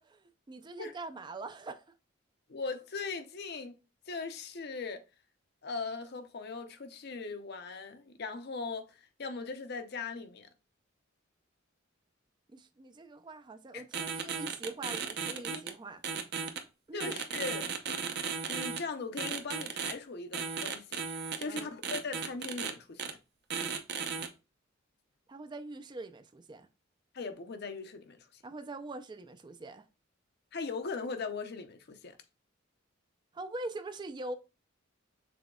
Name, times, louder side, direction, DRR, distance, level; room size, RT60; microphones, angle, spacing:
voice 1, 0.0-1.9 12.5-16.0 16.9-17.2 21.5-21.7 25.3-26.7 28.4-29.9 33.3-34.3, right 2 dB, 20° right, 0.3 m, -43 dB
voice 2, 2.5-3.8 4.1-5.0 5.6-10.5 13.7-13.8 15.5-15.6 16.9-17.7 18.5-21.0 21.4-23.2 27.1-28.4 30.5-32.2, left 4 dB, 50° left, 0.6 m, -39 dB
sound 1, 13.9-15.7 16.0-16.6 17.0-18.8 19.2-19.9 20.3-22.7 23.0-23.1 23.5-24.3, right 6 dB, 55° right, 0.7 m, -35 dB
6.1 x 3.8 x 2.3 m
head